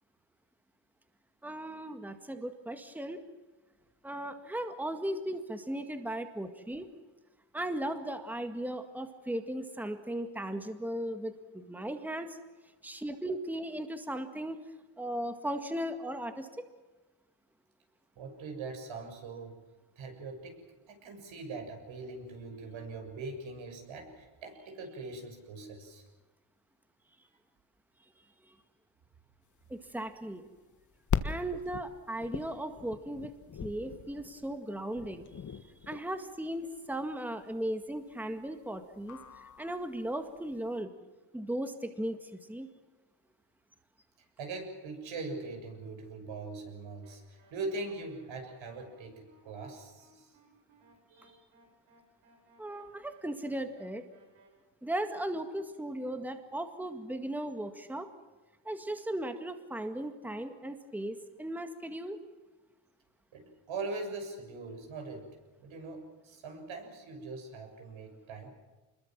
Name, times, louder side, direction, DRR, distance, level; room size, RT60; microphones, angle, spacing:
voice 1, 1.4-3.2 4.0-6.9 7.5-12.4 12.8-14.6 15.0-16.7 28.0-28.1 28.4-28.6 29.7-30.5 31.2-33.3 33.6-40.9 41.3-42.7 52.6-54.1 54.8-58.1 58.6-62.2, right 1 dB, 5° right, 7 dB, 1.9 m, -37 dB
voice 2, 18.2-19.6 20.0-20.6 20.9-26.0 44.4-50.4 51.1-51.4 63.3-65.3 65.6-68.5, right 3 dB, 65° right, 4 dB, 7.1 m, -41 dB
sound 1, 29.6-40.7, left 7 dB, 35° left, 1.6 m, -40 dB
sound 2, 47.0-54.5, right 2 dB, 85° right, 7.7 m, -64 dB
26.0 x 21.5 x 7.5 m, 1.2 s
cardioid pair, 115°, 49 cm